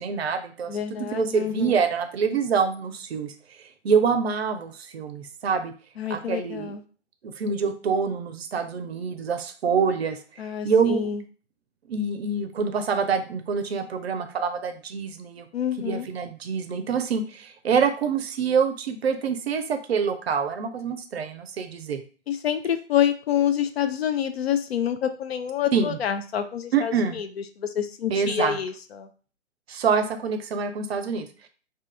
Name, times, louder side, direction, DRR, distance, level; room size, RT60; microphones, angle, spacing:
voice 1, 0.0-3.3 3.8-5.7 6.1-6.8 7.2-10.2 10.6-11.1 11.9-15.5 15.8-22.0 25.7-26.0 26.7-27.2 28.1-28.6 29.7-31.5, right 6 dB, 60° right, 8 dB, 0.5 m, -26 dB
voice 2, 0.7-1.8 6.0-6.8 10.4-11.2 15.5-16.1 22.3-27.3 27.6-29.1, left 9 dB, 60° left, 8 dB, 0.5 m, -27 dB
2.8 x 2.3 x 2.3 m, 0.38 s
figure-of-eight pair, 130°, 35 cm